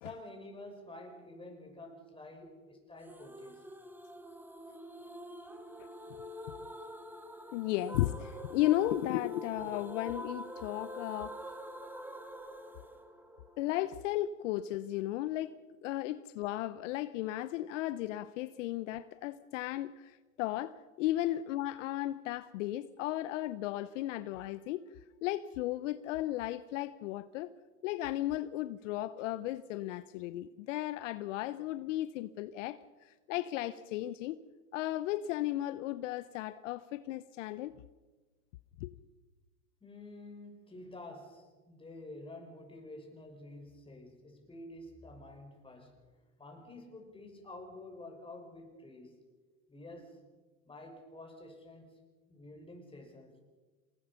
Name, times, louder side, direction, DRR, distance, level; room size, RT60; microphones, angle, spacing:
voice 1, 0.0-3.6 39.8-46.1 46.4-49.2 49.7-50.2 50.7-52.0 52.3-53.4, left 2 dB, 15° left, 5.9 m, -49 dB
sound 1, 3.1-14.0, equal, 5° right, 2.0 m, -46 dB
voice 2, 7.5-11.4 13.6-15.6 15.8-24.8 25.2-27.5 27.8-34.4 34.7-37.8 38.8-38.9, left 14 dB, 60° left, 0.9 m, -35 dB
28.0 x 19.5 x 5.7 m
hypercardioid pair, 105°, 41 cm